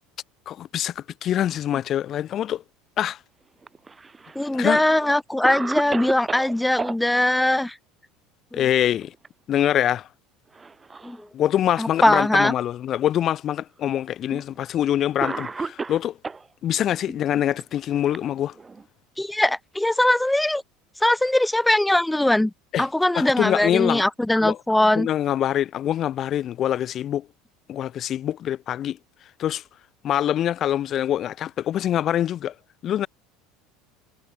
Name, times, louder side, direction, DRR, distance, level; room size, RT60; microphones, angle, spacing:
voice 1, 0.5-2.6 3.0-3.2 4.5-4.8 8.5-9.1 9.5-10.1 11.3-16.2 16.6-18.5 22.7-22.9 23.1-24.0 24.4-24.6 24.9-27.3 27.7-29.0 29.4-29.6 30.0-32.5 32.8-33.1, left 11 dB, 45° left, 4.0 m, -24 dB
Cough, 3.6-4.5 5.0-5.1 5.4-7.0 8.8-9.3 9.6-9.7 10.5-11.2 12.0-12.1 13.2-13.3 14.4-14.6 15.2-16.5 17.4-18.9, right 4 dB, 20° right, 7.4 m, -33 dB
voice 2, 4.3-7.8 8.5-8.6 11.0-11.3 11.8-12.5 14.3-14.4 19.2-20.6 21.0-22.5 22.8-25.1, left 1 dB, 5° left, 4.5 m, -21 dB
hypercardioid pair, 85°, 0 cm